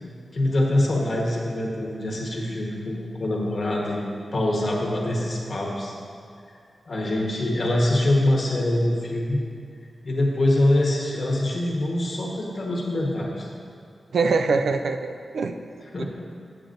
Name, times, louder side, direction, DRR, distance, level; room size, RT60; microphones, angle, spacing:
voice 1, 0.3-4.0 4.3-5.9 6.9-9.4 10.0-13.5 15.9-16.0, left 1 dB, 45° left, -3 dB, 1.2 m, -24 dB
voice 2, 14.1-15.5 16.0-16.1, right 4 dB, 85° right, 7 dB, 0.4 m, -23 dB
8.8 x 7.7 x 2.6 m, 2.4 s
wide cardioid pair, 145°, 0 cm